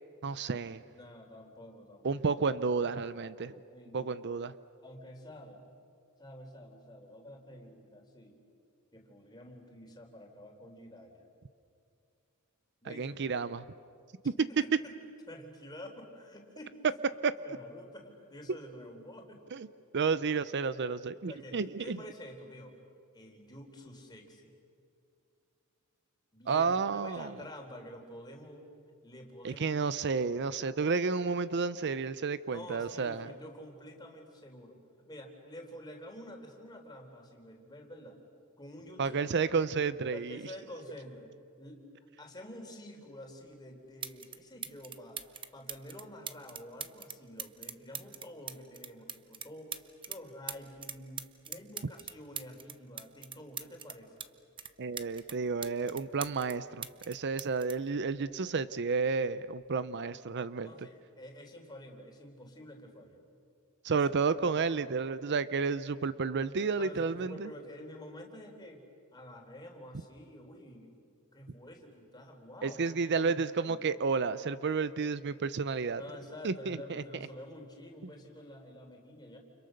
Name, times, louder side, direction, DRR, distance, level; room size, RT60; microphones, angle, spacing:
voice 1, 0.2-0.8 2.0-3.5 3.9-4.5 12.8-13.6 14.2-14.3 17.2-17.3 19.5-19.7 19.9-22.0 26.5-27.4 29.4-33.3 39.0-40.4 54.8-60.7 63.8-67.5 72.6-76.0 76.4-77.0, right 5 dB, 55° right, 15 dB, 0.6 m, -31 dB
voice 2, 0.9-2.2 3.4-4.1 4.8-5.6 6.2-8.3 8.9-11.2 12.8-13.2 14.4-15.0 15.3-16.8 17.4-19.4 21.3-22.7 23.1-24.5 26.3-28.7 29.0-29.8 30.1-30.4 32.5-38.2 38.6-39.2 40.1-41.3 41.6-41.8 42.2-54.1 60.6-63.2 63.9-64.1 64.5-65.3 66.8-68.8 69.1-70.9 71.3-73.8 76.0-79.4, left 1 dB, 20° left, 2 dB, 3.9 m, -49 dB
sound 1, 43.5-43.6 44.0-44.4 44.6-50.2 50.5-54.3 54.6-56.6 56.8-58.7 59.6-59.8, right 7 dB, 25° right, 0.8 m, -42 dB
29.5 x 29.5 x 6.6 m, 2.5 s
head